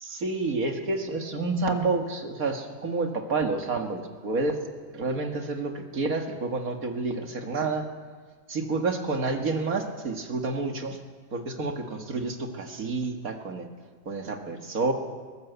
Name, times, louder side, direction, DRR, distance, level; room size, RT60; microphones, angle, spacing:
voice 1, 0.0-4.6 4.9-7.9 8.5-11.0 11.3-13.7 14.1-14.9, right 3 dB, 80° right, 4 dB, 2.3 m, -29 dB
22.0 x 18.5 x 8.1 m, 1.5 s
omnidirectional pair, 1.5 m